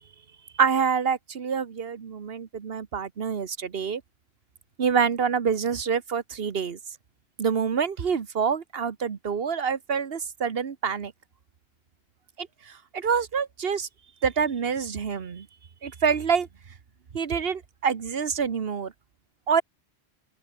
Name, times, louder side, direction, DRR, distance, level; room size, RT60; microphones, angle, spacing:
voice 1, 0.6-4.0 4.8-6.8 7.4-11.1 12.4-13.9 14.2-15.5 15.8-16.5 17.1-18.9 19.5-19.6, right 6 dB, 65° right, 1.4 m, -26 dB
open air
omnidirectional pair, 1.1 m